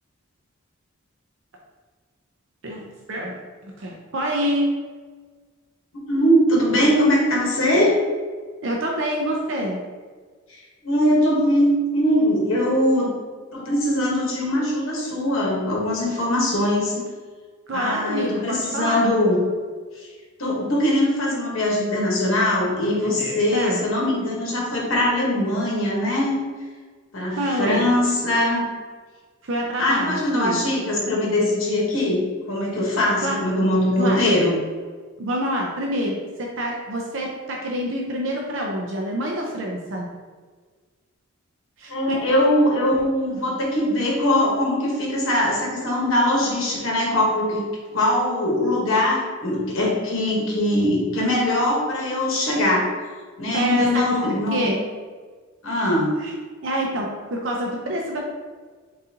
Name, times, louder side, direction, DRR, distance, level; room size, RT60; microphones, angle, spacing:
voice 1, 3.6-4.7 8.6-9.8 17.7-19.0 23.0-23.8 27.4-27.9 29.4-30.6 33.2-33.4 34.0-34.3 35.2-40.1 41.8-41.9 53.5-54.8 56.2-56.3 56.6-58.2, equal, 60° right, -1 dB, 0.5 m, -26 dB
voice 2, 5.9-7.9 10.5-13.1 13.5-16.9 17.7-19.4 20.0-20.1 20.4-26.4 27.1-28.7 29.8-32.2 32.5-34.6 41.9-47.6 47.9-52.9 53.4-54.7 55.6-56.2, left 1 dB, 70° left, -3 dB, 1.2 m, -21 dB
3.9 x 3.7 x 2.8 m, 1.5 s
head